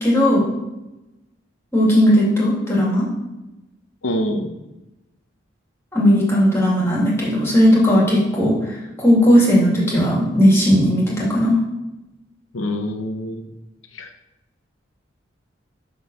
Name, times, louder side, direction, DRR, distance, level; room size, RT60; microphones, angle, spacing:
voice 1, 0.0-0.4 1.7-3.1 5.9-8.6 9.0-11.6, equal, 15° left, -5 dB, 2.2 m, -16 dB
voice 2, 4.0-4.6 12.5-13.5 13.9-14.1, left 1 dB, 80° left, 5 dB, 0.8 m, -25 dB
9.3 x 3.8 x 6.2 m, 0.99 s
head